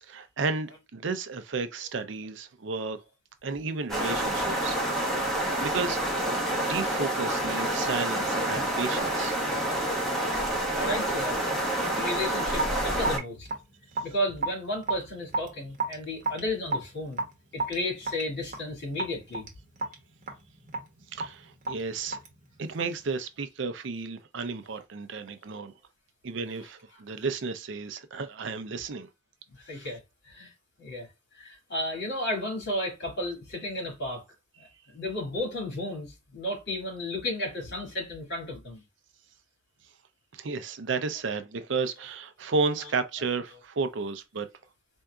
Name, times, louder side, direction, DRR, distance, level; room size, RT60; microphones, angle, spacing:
voice 1, 0.0-3.0 3.4-6.0 6.6-9.5 21.1-22.2 22.6-25.7 26.2-29.1 34.6-34.7 40.3-44.5, right 4 dB, 65° right, 0.5 m, -33 dB
sound 1, 3.9-13.2, right 1 dB, ahead, 1.0 m, -28 dB
voice 2, 10.7-11.4 11.9-13.5 14.0-17.3 17.5-19.5 26.5-27.0 29.5-30.5 30.8-31.1 31.3-34.2 34.6-38.8, left 1 dB, 55° left, 2.2 m, -33 dB
Raindrop / Drip, 12.5-23.0, right 3 dB, 40° right, 1.0 m, -34 dB
4.5 x 2.6 x 2.3 m
head